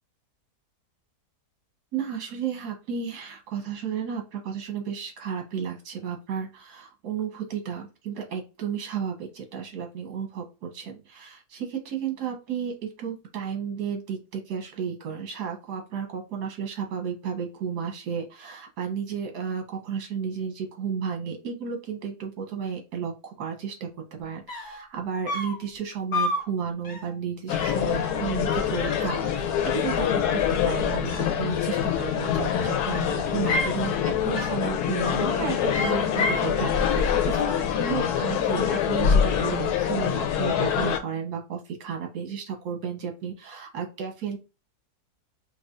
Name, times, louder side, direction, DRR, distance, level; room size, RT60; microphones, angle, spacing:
voice 1, 1.9-44.4, right 7 dB, 75° right, 3 dB, 1.5 m, -33 dB
sound 1, 24.2-24.3 24.5-24.8 25.3-25.6 26.1-26.5 26.8-27.1 27.6-27.9 28.7-29.6 29.8-30.6 31.8-32.4 32.9-33.8 34.3-34.6 34.9-35.3 35.7-36.5, left 2 dB, 40° left, 0.8 m, -32 dB
sound 2, 27.5-41.0, left 8 dB, 80° left, 1.2 m, -25 dB
4.7 x 2.4 x 2.4 m, 0.29 s
omnidirectional pair, 1.7 m